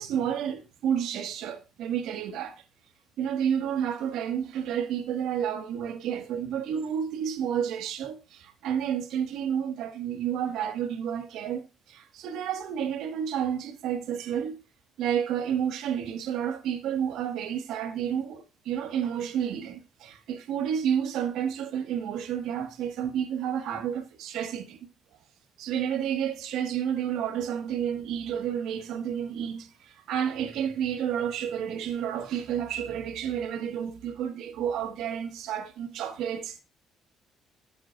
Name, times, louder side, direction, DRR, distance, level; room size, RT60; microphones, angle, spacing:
voice 1, 0.0-2.5 3.2-11.6 11.9-14.6 15.0-24.8 25.6-36.6, right 9 dB, 75° right, 1.5 m, -30 dB
14.0 x 7.9 x 2.5 m
cardioid pair, 170°, 0 cm